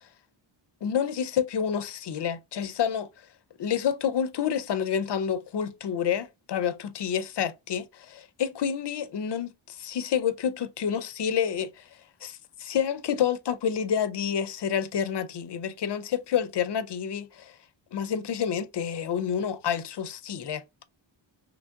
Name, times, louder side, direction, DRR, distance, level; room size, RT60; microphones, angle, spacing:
voice 1, 0.8-3.1 3.6-11.9 12.2-17.6 17.9-20.6, left 8 dB, 60° left, 0.5 m, -29 dB
3.4 x 3.1 x 2.5 m
wide cardioid pair, 130°, 48 cm